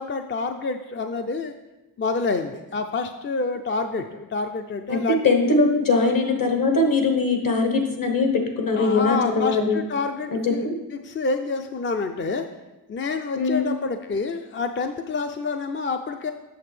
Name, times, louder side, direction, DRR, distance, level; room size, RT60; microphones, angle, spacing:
voice 1, 0.0-1.5 2.0-5.2 5.9-6.0 8.8-10.7 11.0-12.5 12.9-16.3, left 4 dB, 30° left, 6 dB, 0.4 m, -28 dB
voice 2, 4.9-9.8 10.3-10.8 13.4-13.7, left 3 dB, 60° left, 3 dB, 1.2 m, -21 dB
7.9 x 6.5 x 3.2 m, 1.0 s
wide cardioid pair, 85°, 38 cm